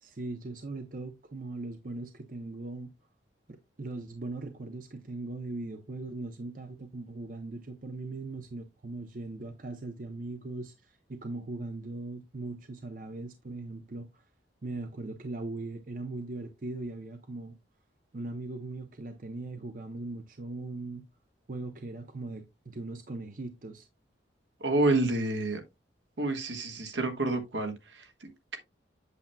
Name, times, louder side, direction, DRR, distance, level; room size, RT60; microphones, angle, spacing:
voice 1, 0.0-2.9 3.5-14.2 14.6-17.6 18.1-21.0 21.5-23.9, right 2 dB, 45° right, 0.7 m, -39 dB
voice 2, 24.6-25.6 26.2-28.6, right 2 dB, 75° right, 1.4 m, -29 dB
8.2 x 6.9 x 2.2 m
head